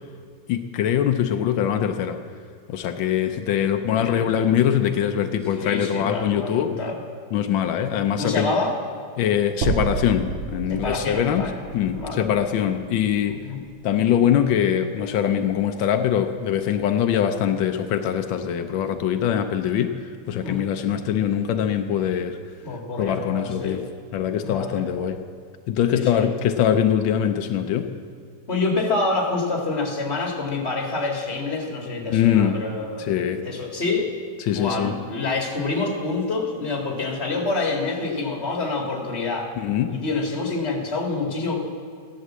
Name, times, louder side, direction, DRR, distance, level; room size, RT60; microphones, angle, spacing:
voice 1, 0.5-2.2 2.7-6.7 7.3-8.5 9.2-11.5 11.7-13.4 13.8-19.9 20.3-22.4 23.0-23.8 24.1-25.2 25.7-27.9 32.1-32.6 33.0-33.4 34.4-34.9 39.6-40.0, left 9 dB, 85° left, 6 dB, 1.5 m, -22 dB
voice 2, 3.9-4.3 5.6-7.0 8.2-8.8 10.7-11.6 11.9-12.3 13.4-13.6 20.4-20.6 22.6-23.8 24.4-24.9 25.9-26.3 28.5-33.2 33.4-34.1 34.5-39.5 39.9-41.6, left 3 dB, 35° left, 1 dB, 2.3 m, -27 dB
sound 1, 9.6-13.8, right 5 dB, 55° right, 0.9 m, -31 dB
15.5 x 11.0 x 7.4 m, 2.2 s
omnidirectional pair, 2.1 m